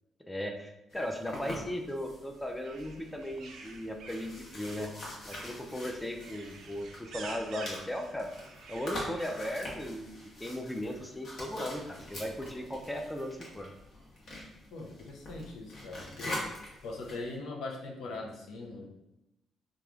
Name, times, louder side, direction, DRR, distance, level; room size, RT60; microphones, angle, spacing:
voice 1, 0.3-4.9 5.3-8.3 8.7-10.1 10.4-13.7, left 1 dB, 10° left, 3 dB, 0.4 m, -37 dB
sound 1, 0.9-17.3, left 1 dB, 60° left, 0.9 m, -45 dB
sound 2, 2.6-9.6, right 4 dB, 80° right, 0.4 m, -49 dB
voice 2, 14.7-16.4 16.8-18.9, left 2 dB, 85° left, 0 dB, 0.5 m, -41 dB
3.0 x 2.3 x 2.4 m, 0.91 s
cardioid pair, 90°, 0 cm